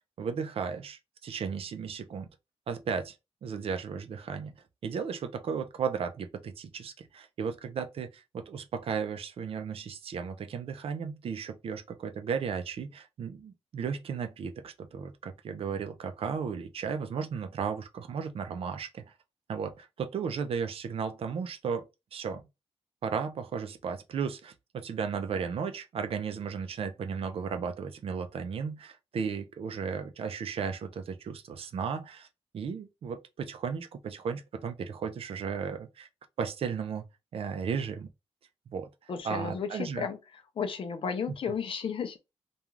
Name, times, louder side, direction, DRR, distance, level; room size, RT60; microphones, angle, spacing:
voice 1, 0.2-2.3 2.7-3.1 3.4-4.5 4.8-19.1 19.5-21.9 22.1-22.4 23.0-32.3 32.5-36.1 36.4-37.0 37.3-38.1 38.7-38.9 39.2-40.1, right 6 dB, 60° right, 0.4 m, -35 dB
voice 2, 39.1-40.2 40.6-42.2, left 6 dB, 55° left, 0.5 m, -33 dB
2.4 x 2.3 x 3.0 m
wide cardioid pair, 145°, 11 cm